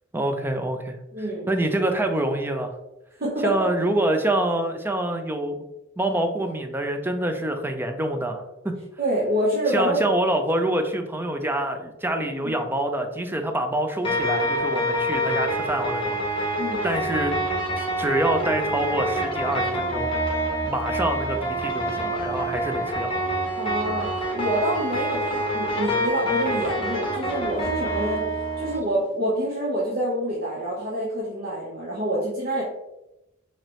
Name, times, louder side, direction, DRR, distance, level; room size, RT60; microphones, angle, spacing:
voice 1, 0.1-1.0 1.5-2.7 3.4-5.6 6.0-8.4 9.7-16.2 16.8-17.4 17.8-20.1 20.6-23.1, right 1 dB, 10° right, 5 dB, 0.4 m, -26 dB
voice 2, 1.1-1.5 3.2-3.7 9.0-10.1 12.4-12.5 16.6-16.8 23.5-32.6, right 1 dB, 50° right, -5 dB, 0.8 m, -27 dB
sound 1, 14.0-28.8, right 1 dB, 25° left, 1.0 m, -26 dB
4.4 x 2.9 x 3.0 m, 0.93 s
head